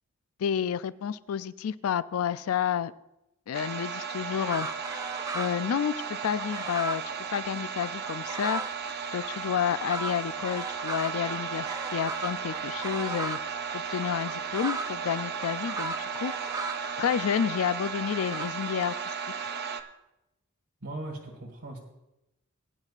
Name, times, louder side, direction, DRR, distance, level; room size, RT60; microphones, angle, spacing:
voice 1, 0.4-2.9 3.5-4.7 5.3-7.0 7.3-8.6 9.1-13.4 13.7-16.3 17.0-19.1, left 8 dB, 85° left, 16 dB, 0.4 m, -30 dB
sound 1, 3.5-19.8, right 6 dB, 50° right, 0.7 m, -35 dB
sound 2, 4.5-5.7 6.0-8.8 9.2-13.5 14.0-18.5, right 3 dB, 15° right, 0.3 m, -38 dB
voice 2, 20.8-21.8, right 1 dB, 85° right, -1 dB, 1.8 m, -38 dB
19.5 x 9.8 x 2.4 m, 0.91 s
head